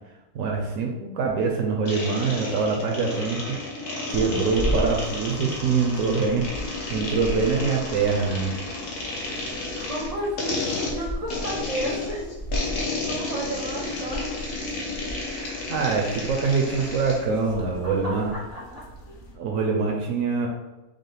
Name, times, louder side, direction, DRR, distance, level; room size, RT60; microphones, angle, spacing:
voice 1, 0.3-3.6 4.1-8.6 15.7-18.3 19.4-20.5, right 4 dB, 70° right, 0 dB, 0.9 m, -24 dB
sound 1, 1.9-17.3, left 2 dB, 80° left, 1.3 m, -32 dB
sound 2, 4.1-19.4, equal, 50° left, 0.7 m, -36 dB
voice 2, 9.3-12.3 12.6-14.2 17.8-18.8, equal, 40° right, -4 dB, 0.6 m, -33 dB
5.3 x 2.0 x 3.3 m, 1.1 s
omnidirectional pair, 1.6 m